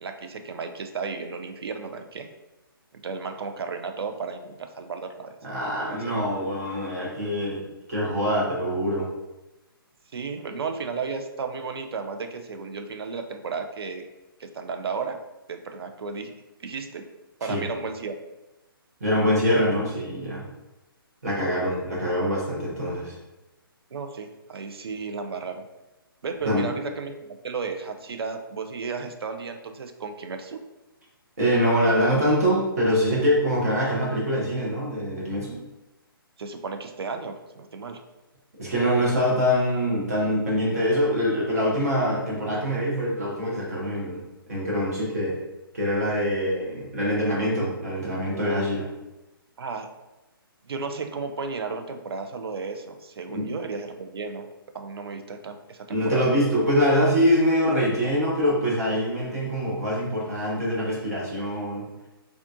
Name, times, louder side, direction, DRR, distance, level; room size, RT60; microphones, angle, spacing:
voice 1, 0.0-2.3 3.0-5.4 5.8-6.1 10.1-14.0 14.4-15.2 15.5-16.3 16.6-17.1 17.4-18.2 23.9-25.7 26.2-30.6 36.4-38.0 49.6-49.9 50.6-54.5 54.7-56.3, right 4 dB, 85° right, 6 dB, 0.4 m, -34 dB
voice 2, 5.4-7.6 7.9-9.1 17.4-17.7 19.0-20.5 21.2-23.2 26.4-26.7 31.4-35.6 38.6-44.2 44.5-45.4 45.7-48.9 53.3-53.5 55.9-61.9, equal, 40° right, -4 dB, 0.8 m, -24 dB
3.5 x 2.4 x 2.6 m, 1.0 s
hypercardioid pair, 175°, 13 cm